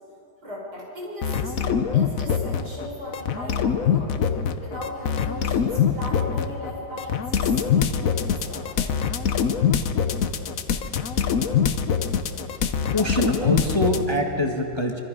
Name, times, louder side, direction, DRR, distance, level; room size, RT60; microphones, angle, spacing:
voice 1, 0.4-4.1 4.6-8.9, left 1 dB, 85° right, -4 dB, 6.5 m, -37 dB
sound 1, 1.2-2.9 3.1-14.0, left 7 dB, 60° left, 1.2 m, -24 dB
voice 2, 12.9-15.0, left 1 dB, 15° left, 1 dB, 1.7 m, -25 dB
25.5 x 25.5 x 5.4 m, 2.8 s
omnidirectional pair, 1.7 m